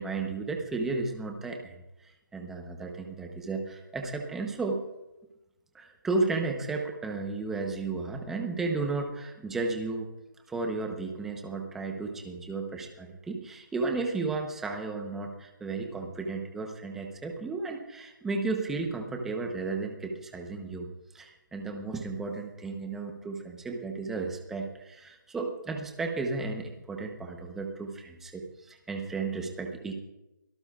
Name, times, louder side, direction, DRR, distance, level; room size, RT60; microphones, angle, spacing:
voice 1, 0.0-1.8 2.0-4.8 5.7-10.1 10.5-20.9 21.1-29.9, right 3 dB, 5° right, 3 dB, 0.9 m, -33 dB
24.0 x 17.5 x 2.5 m, 0.97 s
hypercardioid pair, 170°, 11 cm